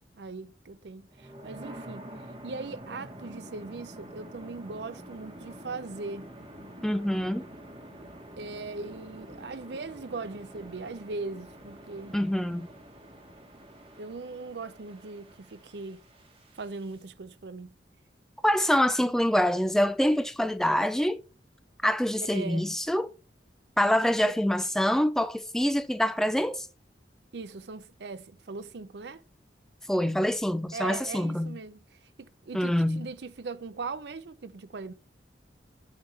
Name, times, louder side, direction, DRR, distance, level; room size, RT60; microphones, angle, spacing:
voice 1, 0.2-2.1 2.4-6.3 8.4-12.2 14.0-16.0 16.6-17.7 22.2-22.7 27.3-29.2 30.7-31.8 32.2-34.9, right 3 dB, 70° right, 0.6 m, -39 dB
sound 1, 1.1-17.0, right 1 dB, 30° right, 1.2 m, -47 dB
voice 2, 6.8-7.5 12.1-12.7 18.4-21.2 21.8-23.1 23.8-26.7 29.9-31.6 32.5-33.1, equal, 5° left, 0.3 m, -25 dB
9.0 x 3.6 x 4.3 m
head